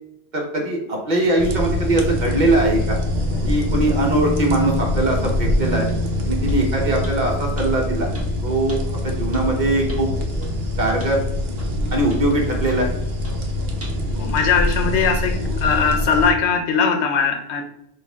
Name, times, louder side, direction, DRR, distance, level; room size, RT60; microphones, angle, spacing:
voice 1, 0.3-3.0 3.4-5.9 6.2-8.1 8.4-10.1 10.8-11.2 11.9-13.0, right 2 dB, 45° right, 0 dB, 1.1 m, -21 dB
sound 1, 1.4-16.3, left 1 dB, 60° right, 0.9 m, -24 dB
sound 2, 5.9-6.0 6.5-6.6 7.0-7.2 7.6-7.7 8.1-8.3 8.7-8.8 9.3-9.5 9.9-10.1 10.4-10.5 11.0-11.2 11.6-11.7 12.1-12.2 12.7-12.9 13.2-13.4 13.8-14.1 14.4-14.5 15.0-15.1, equal, 15° right, 0.8 m, -34 dB
voice 2, 14.2-15.3 15.6-17.6, left 6 dB, 75° left, 5 dB, 0.9 m, -19 dB
6.0 x 2.5 x 3.6 m, 0.80 s
omnidirectional pair, 1.2 m